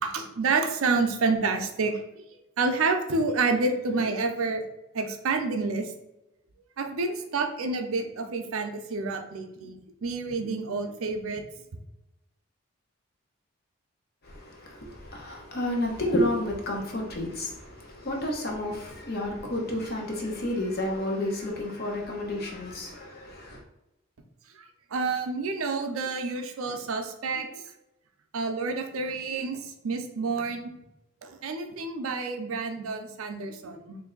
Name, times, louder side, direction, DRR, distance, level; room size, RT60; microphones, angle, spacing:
voice 1, 0.0-2.0 2.6-4.6 4.9-5.9 6.8-11.4 24.6-27.6 28.3-29.6 29.8-30.7 31.2-34.0, right 3 dB, 75° right, 0.5 m, -29 dB
voice 2, 14.3-23.6, left 1 dB, 45° left, 0.8 m, -31 dB
3.2 x 2.6 x 3.7 m
head